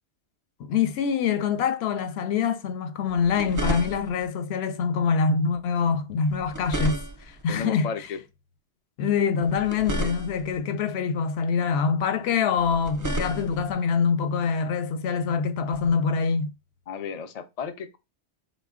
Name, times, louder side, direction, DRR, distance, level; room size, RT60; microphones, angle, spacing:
voice 1, 0.6-7.9 9.0-16.5, left 6 dB, 70° left, 0.8 m, -25 dB
sound 1, 3.1-4.3 6.3-7.4 9.4-10.6 12.6-13.7 15.7-15.9, right 1 dB, 30° right, 0.4 m, -32 dB
voice 2, 7.5-8.2 16.9-18.0, left 6 dB, 55° left, 0.4 m, -34 dB
4.0 x 2.2 x 3.5 m
omnidirectional pair, 1.2 m